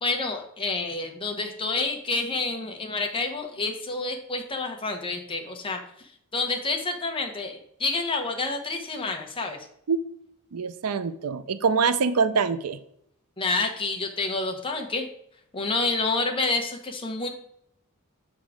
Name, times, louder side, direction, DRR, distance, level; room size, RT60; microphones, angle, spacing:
voice 1, 0.0-9.6 13.4-15.1 15.5-17.3, left 3 dB, 25° left, 3 dB, 1.0 m, -28 dB
voice 2, 10.5-12.8, right 5 dB, 85° right, 13 dB, 0.5 m, -24 dB
7.1 x 3.8 x 4.9 m, 0.70 s
head